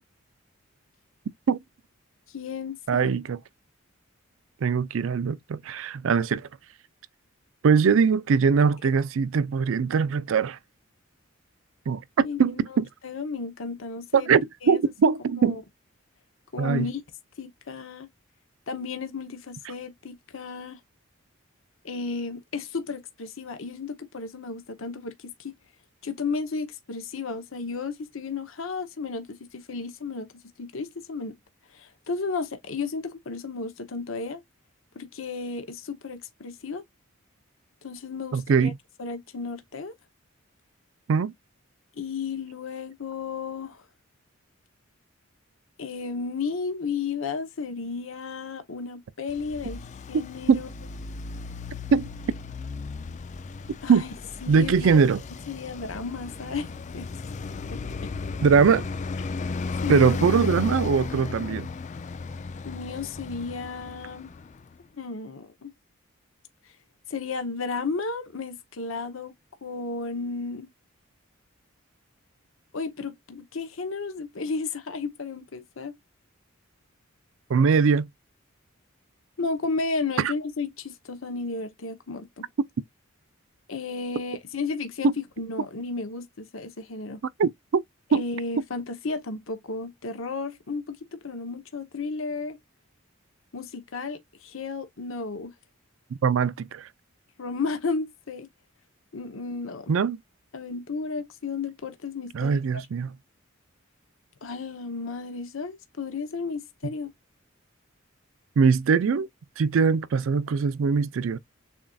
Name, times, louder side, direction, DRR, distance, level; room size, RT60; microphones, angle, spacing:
voice 1, 2.3-3.1 12.2-12.6 13.0-14.3 14.6-14.8 15.4-15.6 16.5-17.0 17.4-18.1 18.7-20.8 21.8-25.5 26.0-30.3 30.6-31.3 31.7-34.4 35.0-36.8 37.8-38.7 39.0-39.9 42.0-43.8 45.8-49.8 50.1-50.7 53.8-54.1 54.4-55.0 55.5-56.7 56.9-57.1 57.7-58.1 59.8-60.1 62.6-64.3 65.0-65.7 67.1-69.3 69.6-70.7 72.7-76.0 79.4-82.5 83.7-87.2 88.1-92.6 93.5-95.5 97.4-98.5 99.1-99.9 100.5-102.6 104.4-107.1, left 4 dB, 70° left, 0.8 m, -33 dB
voice 2, 2.9-3.4 4.6-6.5 7.6-10.6 11.9-12.9 14.1-15.6 16.6-16.9 19.7-19.8 38.3-38.8 41.1-41.3 50.5-50.6 51.9-52.1 53.9-54.1 54.5-55.2 58.4-58.9 59.9-61.7 77.5-78.1 80.2-80.3 85.0-85.1 87.4-87.8 88.1-88.2 96.2-96.9 99.9-100.2 102.3-103.1 108.6-109.3 109.6-111.4, right 5 dB, 65° right, 0.4 m, -22 dB
Traffic noise roadway noise, 49.3-64.8, left 4 dB, 35° left, 0.4 m, -35 dB
7.0 x 2.5 x 2.3 m
head